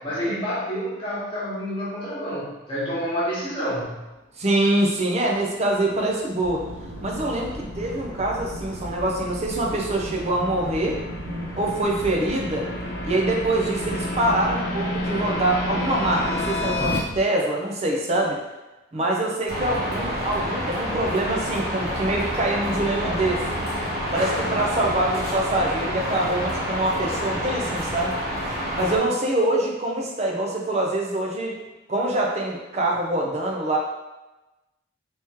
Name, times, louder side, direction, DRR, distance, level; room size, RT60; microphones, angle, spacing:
voice 1, 0.0-4.0, equal, 25° left, -9 dB, 1.2 m, -28 dB
voice 2, 4.4-6.6 7.0-11.0 11.6-12.7 13.0-18.4 18.9-23.4 24.1-28.1 28.7-31.5 31.9-33.8, right 1 dB, 30° right, -1 dB, 0.5 m, -24 dB
sound 1, 5.5-17.0, left 1 dB, 55° left, 0.8 m, -32 dB
sound 2, 6.4-17.2, equal, 90° right, 0.5 m, -36 dB
sound 3, 19.5-29.0, equal, 50° right, 1.0 m, -28 dB
3.5 x 3.0 x 2.9 m, 1.0 s
head